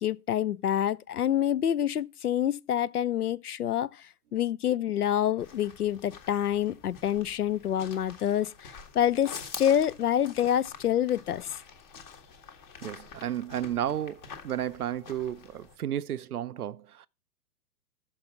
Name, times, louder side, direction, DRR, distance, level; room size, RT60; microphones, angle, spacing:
voice 1, 0.0-4.0 4.3-11.6, left 10 dB, 65° left, 0.6 m, -27 dB
sound 1, 5.4-15.8, left 6 dB, 25° left, 1.3 m, -47 dB
voice 2, 12.8-17.1, right 11 dB, 65° right, 0.6 m, -33 dB
6.7 x 5.3 x 6.9 m
figure-of-eight pair, 115°, 49 cm